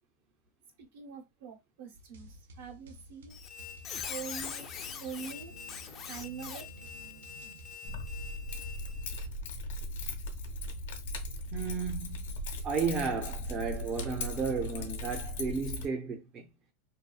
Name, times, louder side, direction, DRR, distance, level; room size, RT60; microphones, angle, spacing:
voice 1, 0.9-3.4 4.1-4.7 5.0-5.6 5.9-6.7 7.0-7.1 7.8-8.1, right 6 dB, 70° right, 1.0 m, -44 dB
sound 1, 1.9-7.8, right 1 dB, 90° right, 0.5 m, -51 dB
Squeak, 3.3-9.3, left 7 dB, 35° left, 0.4 m, -43 dB
Keys jangling, 7.9-15.8, left 1 dB, 80° left, 0.7 m, -38 dB
voice 2, 11.5-12.3 12.6-16.5, right 5 dB, 35° right, 0.5 m, -33 dB
2.6 x 2.3 x 2.2 m
supercardioid pair, 120°, 0 cm